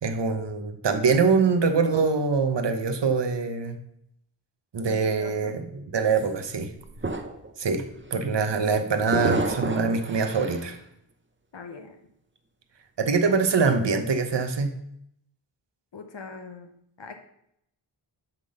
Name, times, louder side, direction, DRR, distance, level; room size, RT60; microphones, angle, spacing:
voice 1, 0.0-3.8 4.7-6.7 7.6-7.8 8.1-10.8 13.0-14.7, right 4 dB, 60° right, 7 dB, 1.1 m, -24 dB
voice 2, 4.8-5.5 11.5-12.0 15.9-16.7 17.0-17.2, left 4 dB, 60° left, 5 dB, 1.0 m, -41 dB
sound 1, 6.1-6.2 6.8-7.5 7.9-8.1 9.1-10.7, right 3 dB, 25° right, 0.8 m, -30 dB
10.5 x 3.8 x 6.5 m, 0.75 s
wide cardioid pair, 95°, 49 cm